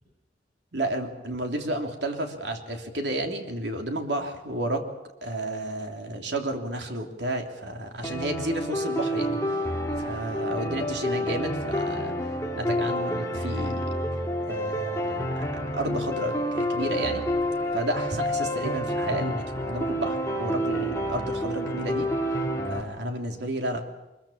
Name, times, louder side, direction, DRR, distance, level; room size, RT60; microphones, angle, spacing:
voice 1, 0.7-4.8 5.2-9.4 10.0-12.1 12.5-14.0 14.5-17.3 17.7-22.1 22.7-23.8, right 1 dB, 75° right, 4 dB, 3.1 m, -31 dB
sound 1, 8.0-22.8, equal, 15° left, 2.7 m, -29 dB
23.5 x 22.0 x 7.3 m, 1.0 s
head